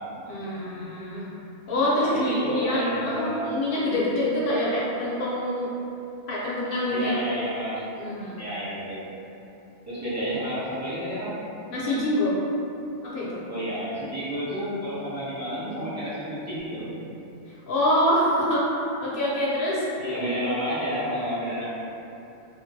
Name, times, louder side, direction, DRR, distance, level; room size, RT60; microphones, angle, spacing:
voice 1, 0.2-1.4 1.7-5.7 6.3-7.2 7.9-8.4 11.7-12.4 13.0-13.5 17.7-18.7 19.0-19.8, left 1 dB, 60° left, -7 dB, 0.6 m, -25 dB
voice 2, 2.0-3.4 6.9-7.8 8.4-9.0 9.9-11.3 13.5-16.9 20.0-21.6, equal, 15° right, -12 dB, 0.7 m, -30 dB
2.7 x 2.5 x 2.6 m, 2.9 s
omnidirectional pair, 1.3 m